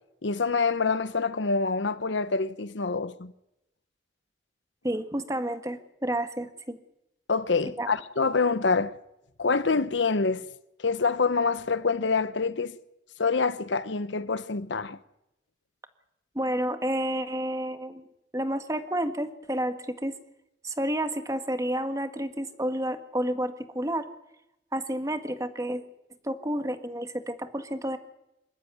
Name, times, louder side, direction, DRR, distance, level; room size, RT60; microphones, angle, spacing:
voice 1, 0.2-3.3 7.3-8.9 9.4-10.4 10.8-12.7 13.2-15.0, left 4 dB, 75° left, 0.8 m, -26 dB
voice 2, 4.8-6.8 7.8-7.9 16.3-18.1 18.3-20.1 20.6-24.1 24.7-25.8 26.2-28.0, right 1 dB, 15° right, 1.5 m, -30 dB
26.5 x 14.5 x 9.5 m
head